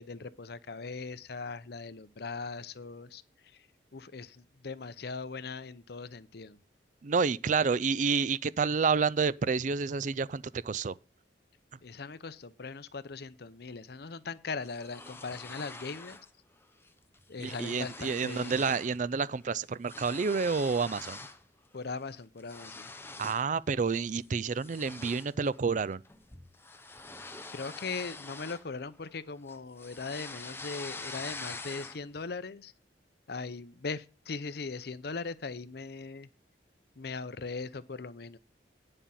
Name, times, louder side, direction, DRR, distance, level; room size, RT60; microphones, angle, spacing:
voice 1, 0.0-3.2 3.9-6.6 11.8-16.2 17.3-18.7 21.7-22.9 27.5-32.7 33.3-36.3 37.0-38.4, left 4 dB, 60° left, 0.7 m, -39 dB
voice 2, 7.0-10.9 17.4-21.2 23.2-26.0, right 5 dB, 45° right, 0.4 m, -29 dB
sound 1, 14.6-16.3 16.6-16.9 17.1-19.0 19.3-21.4 21.9-23.5 23.9-24.2 24.6-29.1 29.5-32.2, left 3 dB, 15° left, 0.7 m, -45 dB
10.0 x 5.4 x 7.1 m
head